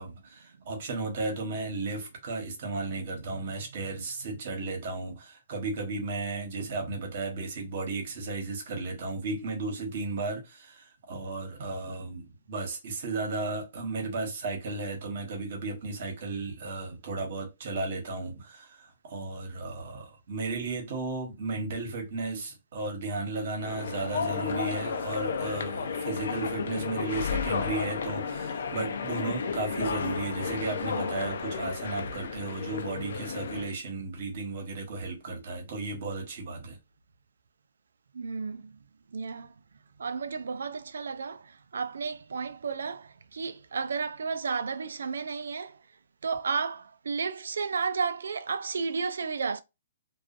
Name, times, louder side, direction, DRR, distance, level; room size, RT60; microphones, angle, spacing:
voice 1, 0.0-36.8, right 3 dB, 50° right, 1.1 m, -34 dB
sound 1, 23.6-33.7, left 5 dB, 70° left, 0.5 m, -33 dB
voice 2, 38.1-38.8 39.1-39.5 40.0-45.8 46.2-49.6, right 5 dB, 80° right, 0.3 m, -32 dB
2.5 x 2.3 x 2.4 m
hypercardioid pair, 150°, 0 cm